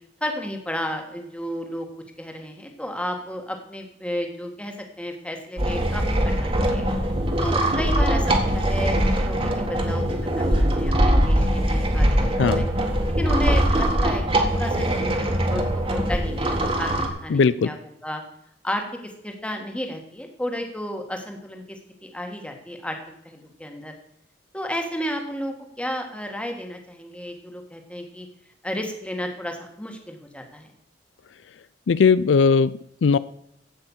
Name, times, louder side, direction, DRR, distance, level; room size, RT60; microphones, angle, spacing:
voice 1, 0.2-1.9 2.2-6.8 7.4-9.0 9.2-12.2 12.4-12.6 13.1-14.2 14.5-16.9 17.2-17.8 18.0-18.2 18.6-23.0 23.2-23.9 24.5-28.3 28.6-30.7, equal, 5° left, 3 dB, 1.7 m, -32 dB
sound 1, 5.6-17.1, right 1 dB, 30° right, 1.8 m, -22 dB
voice 2, 17.3-17.7 31.9-33.2, left 5 dB, 80° left, 17 dB, 0.4 m, -18 dB
15.5 x 5.6 x 7.3 m, 0.72 s
head